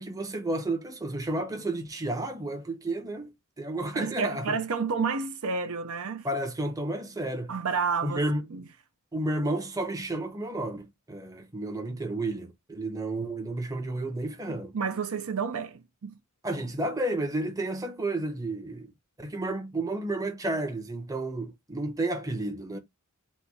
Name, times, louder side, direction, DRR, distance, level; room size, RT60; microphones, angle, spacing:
voice 1, 0.0-4.6 6.2-7.5 8.0-8.4 9.1-14.7 16.4-18.9 19.2-22.8, right 2 dB, 15° right, 0.8 m, -31 dB
voice 2, 3.9-6.3 7.5-8.2 8.5-8.7 14.5-16.2, right 5 dB, 70° right, 0.6 m, -30 dB
4.2 x 2.2 x 4.6 m
head